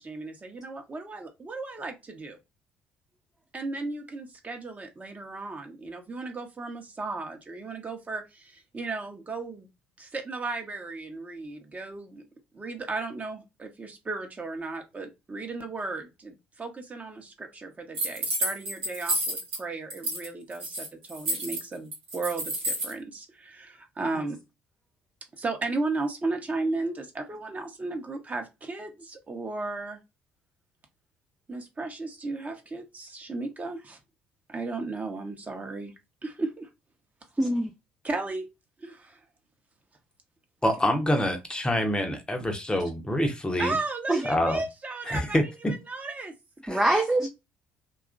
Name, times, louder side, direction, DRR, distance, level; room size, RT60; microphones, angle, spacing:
voice 1, 0.0-2.4 3.5-9.7 10.0-12.2 12.5-24.4 25.4-30.0 31.5-34.0 34.5-35.9 36.2-36.7 38.0-38.5 38.8-39.2 43.6-45.4 45.7-46.3 46.7-46.8, right 3 dB, 25° right, 0.8 m, -35 dB
sound 1, 17.9-19.6 19.9-20.3 20.5-22.9, right 1 dB, 80° right, 1.1 m, -30 dB
voice 2, 37.4-37.7 44.1-44.2 46.7-47.3, right 1 dB, 10° right, 0.4 m, -23 dB
voice 3, 40.6-43.7 44.3-44.6 45.1-45.7 46.6-46.8, left 1 dB, 15° left, 0.8 m, -26 dB
2.8 x 2.4 x 2.4 m
figure-of-eight pair, 55°, 6 cm